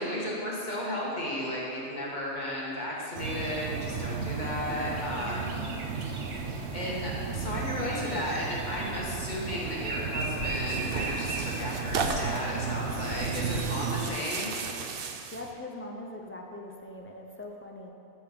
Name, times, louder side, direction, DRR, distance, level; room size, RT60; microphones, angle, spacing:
voice 1, 0.0-5.6 6.1-6.4 6.7-14.6, left 1 dB, 40° left, -5 dB, 1.9 m, -34 dB
sound 1, 3.1-14.1, right 5 dB, 80° right, 1.1 m, -34 dB
voice 2, 5.2-5.9 15.3-17.9, left 1 dB, 15° left, 1 dB, 0.6 m, -42 dB
sound 2, 8.8-9.4 10.3-10.8 11.9-12.3 13.1-13.8, left 4 dB, 75° left, 1.1 m, -42 dB
Tearing, 10.2-15.5, right 5 dB, 60° right, 0.8 m, -36 dB
13.0 x 4.5 x 5.4 m, 2.6 s
omnidirectional pair, 1.2 m